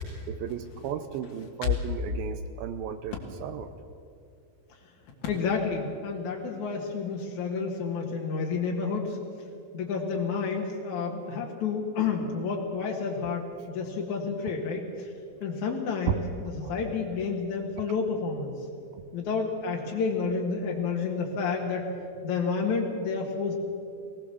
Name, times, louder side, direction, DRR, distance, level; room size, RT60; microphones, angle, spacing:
voice 1, 0.3-3.7 16.6-16.7 18.9-19.0, right 8 dB, 80° right, 8 dB, 2.4 m, -36 dB
voice 2, 5.2-9.2 9.7-15.1 15.4-16.2 16.6-18.5 19.1-21.9 22.2-23.5, left 5 dB, 55° left, -1 dB, 2.7 m, -30 dB
23.0 x 17.5 x 7.0 m, 2.4 s
omnidirectional pair, 4.5 m